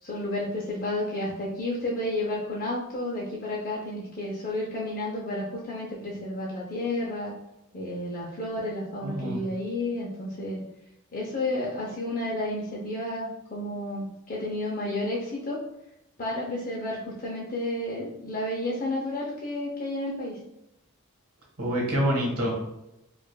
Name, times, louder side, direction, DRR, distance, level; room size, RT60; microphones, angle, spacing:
voice 1, 0.0-7.4 7.7-10.6 11.1-15.6 16.2-20.4, left 1 dB, 40° left, -4 dB, 0.5 m, -31 dB
voice 2, 9.0-9.4 21.6-22.5, equal, 85° right, -3 dB, 1.3 m, -26 dB
4.9 x 2.4 x 2.2 m, 0.90 s
head